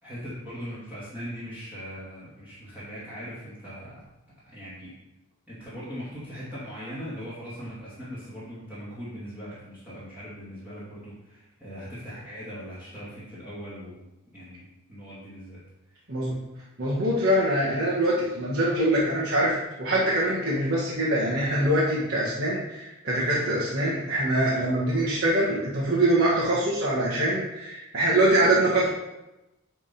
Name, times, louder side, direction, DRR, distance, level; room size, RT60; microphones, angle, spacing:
voice 1, 0.0-4.0 4.5-4.9 5.5-14.0 14.3-15.6 15.9-16.0, equal, 10° right, -12 dB, 2.2 m, -40 dB
voice 2, 16.8-28.9, right 1 dB, 50° right, -8 dB, 1.7 m, -24 dB
9.7 x 3.7 x 4.3 m, 0.96 s
head